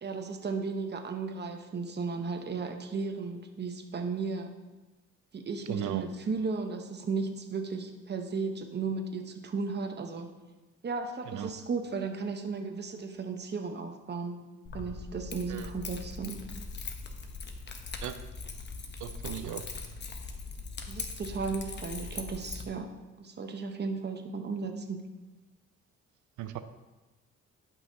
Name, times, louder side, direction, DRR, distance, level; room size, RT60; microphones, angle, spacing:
voice 1, 0.0-4.5 5.3-10.3 10.8-14.4 14.7-16.4 20.9-22.9 23.2-25.1, right 4 dB, 35° right, 5 dB, 0.9 m, -35 dB
voice 2, 5.7-6.0 11.3-11.5 15.5-15.7 18.0-18.1 19.0-19.6 26.4-26.6, right 11 dB, 80° right, 10 dB, 0.6 m, -36 dB
Keys jangling, 14.6-22.6, left 4 dB, 35° left, 0.9 m, -40 dB
11.5 x 5.7 x 2.8 m, 1.1 s
cardioid pair, 90°, 30 cm